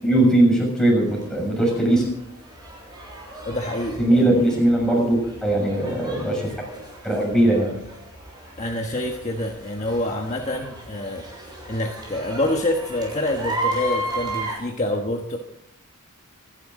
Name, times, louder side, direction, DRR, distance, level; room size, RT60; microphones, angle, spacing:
voice 1, 0.0-2.1 4.0-6.5 7.0-7.7, right 1 dB, 5° left, -2 dB, 6.6 m, -19 dB
sound 1, 1.1-14.6, right 1 dB, 20° right, 6.4 m, -35 dB
voice 2, 3.4-4.4 8.6-15.4, left 1 dB, 30° left, 1 dB, 1.4 m, -27 dB
25.5 x 11.5 x 3.8 m, 0.73 s
head